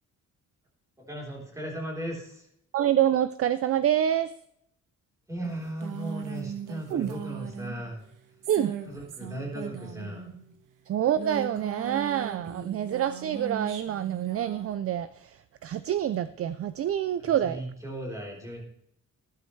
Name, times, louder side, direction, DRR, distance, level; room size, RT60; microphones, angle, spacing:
voice 1, 1.1-2.5 5.3-8.1 8.9-10.3 17.4-18.6, right 1 dB, 10° right, 3.9 m, -36 dB
voice 2, 2.7-4.3 6.9-7.1 8.5-8.7 10.9-17.6, right 10 dB, 45° right, 0.4 m, -27 dB
sound 1, 5.4-10.5 11.0-14.8, right 7 dB, 75° right, 1.6 m, -39 dB
14.5 x 12.0 x 3.3 m
cardioid pair, 150°, 32 cm